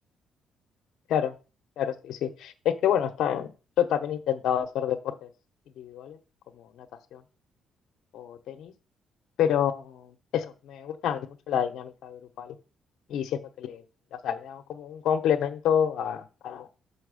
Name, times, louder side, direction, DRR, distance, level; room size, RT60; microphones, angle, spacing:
voice 1, 1.8-3.5 3.8-5.3 5.8-6.2 6.6-6.9 7.1-7.2 8.1-8.7 9.4-12.5 13.1-13.8 14.1-16.7, left 9 dB, 80° left, 8 dB, 1.0 m, -28 dB
5.9 x 4.7 x 6.3 m, 0.34 s
cardioid pair, 90°, 0 cm